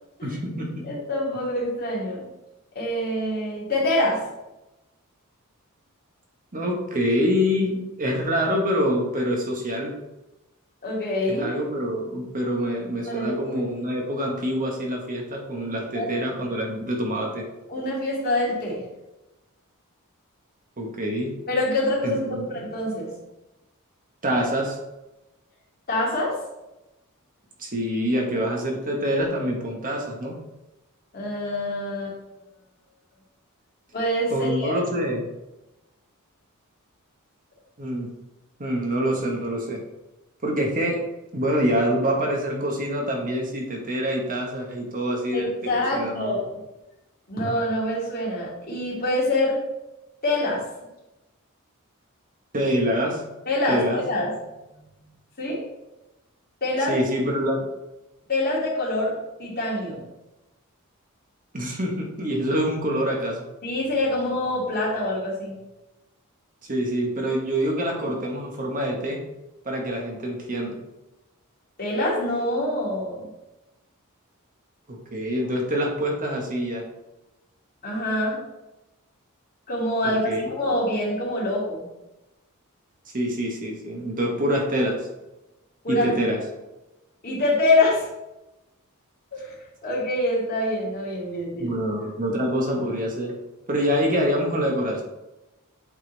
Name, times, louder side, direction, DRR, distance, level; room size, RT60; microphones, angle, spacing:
voice 1, 0.2-0.9 6.5-9.9 11.3-17.4 20.8-21.3 22.0-22.7 24.2-24.8 27.6-30.4 34.3-35.3 37.8-38.1 38.6-39.8 40.4-41.0 41.3-46.3 52.5-53.2 53.7-54.0 56.9-57.7 61.5-63.4 66.7-69.2 69.6-70.7 74.9-76.8 80.0-80.5 83.1-85.0 85.9-86.4 91.6-93.3 93.7-95.0, equal, 40° right, 0 dB, 1.3 m, -26 dB
voice 2, 0.8-2.3 2.7-4.3 10.8-11.5 13.1-13.3 15.9-16.1 17.7-18.8 21.5-23.1 25.9-26.4 31.1-32.2 33.9-34.8 45.3-46.4 47.3-49.6 50.2-50.6 53.5-54.3 54.7-54.8 55.4-55.6 56.6-56.9 58.3-60.0 63.6-65.6 71.8-73.3 77.8-78.4 79.7-81.8 85.8-86.1 87.2-88.1 89.3-89.5 89.8-91.7, left 1 dB, 45° left, -5 dB, 2.6 m, -25 dB
8.3 x 4.1 x 4.0 m, 0.96 s
head